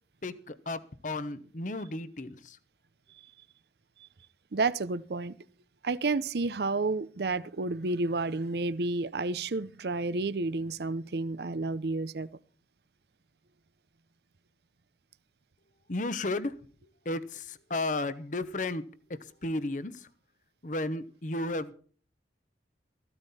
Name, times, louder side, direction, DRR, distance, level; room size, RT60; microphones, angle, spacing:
voice 1, 0.2-2.6 15.9-16.5 17.0-18.8 19.4-20.1 20.6-21.7, left 2 dB, 45° left, 0.9 m, -33 dB
voice 2, 4.5-5.4 5.8-12.3, right 3 dB, 65° right, 0.6 m, -30 dB
14.5 x 13.0 x 4.2 m
head